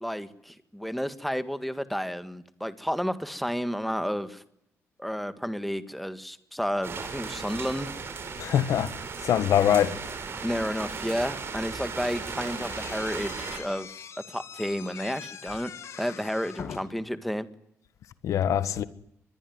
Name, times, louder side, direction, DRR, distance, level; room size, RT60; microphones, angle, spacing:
voice 1, 0.0-4.4 5.0-7.9 10.4-13.9 14.3-15.7 16.0-17.5, equal, ahead, 1.7 m, -31 dB
sound 1, 6.8-13.6, right 5 dB, 50° right, 6.3 m, -36 dB
voice 2, 8.4-8.9 9.2-10.0 18.2-18.8, left 10 dB, 90° left, 1.5 m, -23 dB
Slam / Squeak, 12.1-17.1, left 7 dB, 65° left, 2.3 m, -42 dB
25.5 x 22.0 x 9.5 m
cardioid pair, 130°, 5 cm